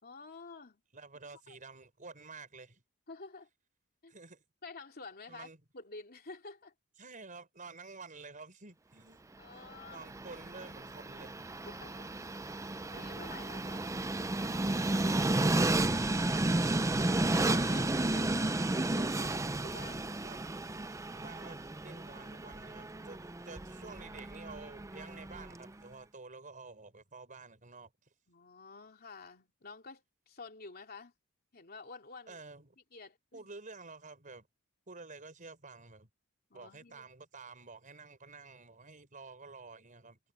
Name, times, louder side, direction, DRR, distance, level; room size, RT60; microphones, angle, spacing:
voice 1, 0.0-0.8 1.5-1.6 3.1-3.5 4.0-4.1 4.6-5.5 5.7-6.7 9.4-10.1 11.6-12.1 12.9-14.3 16.5-18.5 18.9-20.1 28.3-31.1 31.5-32.4 32.9-33.5 36.5-37.1, left 4 dB, 45° left, 3.0 m, -50 dB
voice 2, 0.9-2.8 4.1-4.4 5.3-5.6 7.0-9.2 9.9-11.7 20.2-20.4 21.1-23.2 23.4-27.9 32.3-32.8 33.3-34.5 34.9-36.1 36.5-40.2, right 3 dB, 40° right, 5.2 m, -50 dB
Train, 9.6-25.7, right 2 dB, 15° right, 0.5 m, -33 dB
head